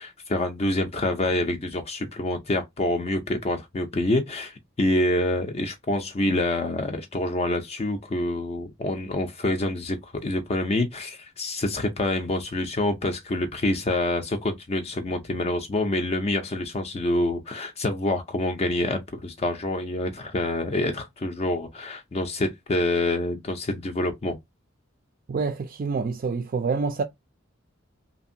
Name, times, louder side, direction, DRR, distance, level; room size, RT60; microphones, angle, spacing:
voice 1, 0.0-24.4, left 1 dB, 30° left, 0.4 m, -27 dB
voice 2, 25.3-27.0, right 4 dB, 45° right, 0.4 m, -27 dB
2.8 x 2.5 x 2.6 m
head